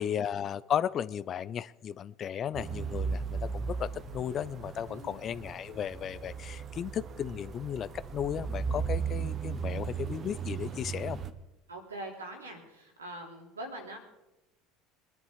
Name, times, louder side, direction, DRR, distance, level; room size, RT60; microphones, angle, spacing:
voice 1, 0.0-11.2, left 9 dB, 40° left, 18 dB, 0.6 m, -35 dB
sound 1, 2.5-11.3, right 6 dB, 40° right, 1.3 m, -36 dB
voice 2, 11.7-14.0, right 1 dB, 90° right, 1 dB, 3.2 m, -43 dB
23.0 x 10.5 x 4.8 m, 0.97 s
hypercardioid pair, 70°, 0 cm